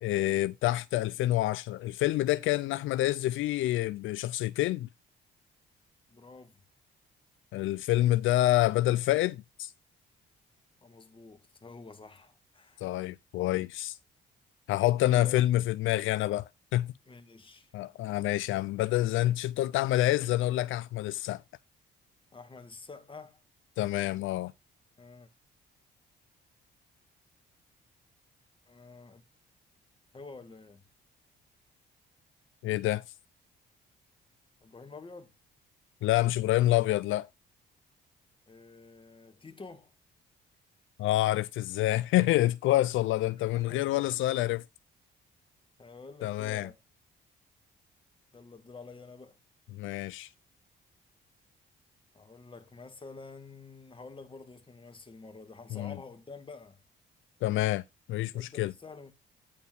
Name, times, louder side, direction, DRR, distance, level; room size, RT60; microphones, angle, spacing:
voice 1, 0.0-4.9 7.5-9.7 12.8-14.0 14.7-16.4 16.7-16.9 17.7-21.4 23.8-24.5 32.6-33.0 36.0-37.3 41.0-44.6 46.2-46.7 49.7-50.3 55.7-56.0 57.4-57.8 58.1-58.7, left 15 dB, 80° left, 0.4 m, -27 dB
voice 2, 6.1-6.6 10.8-12.9 15.0-15.4 17.1-17.7 22.3-23.4 25.0-25.3 28.7-29.2 30.1-30.8 34.6-35.3 38.5-39.9 43.5-44.2 45.8-46.8 48.3-49.4 52.1-56.8 58.3-59.1, left 4 dB, 25° left, 2.0 m, -48 dB
9.7 x 4.4 x 5.4 m
cardioid pair, 90°, 20 cm